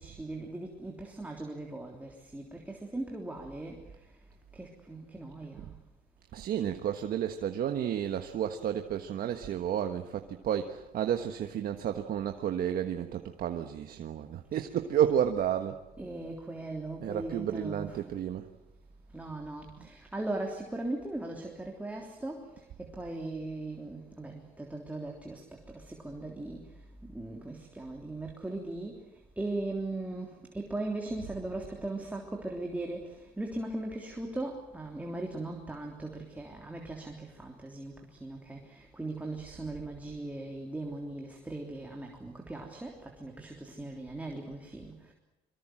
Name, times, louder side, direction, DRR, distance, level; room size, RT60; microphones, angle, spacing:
voice 1, 0.0-4.0 4.5-5.8 16.0-18.0 19.1-29.0 29.4-45.1, right 2 dB, 10° right, 1 dB, 3.3 m, -39 dB
voice 2, 6.3-15.8 17.0-18.4, right 9 dB, 60° right, 6 dB, 1.4 m, -31 dB
24.0 x 23.5 x 7.7 m, 0.95 s
cardioid pair, 110°, 17 cm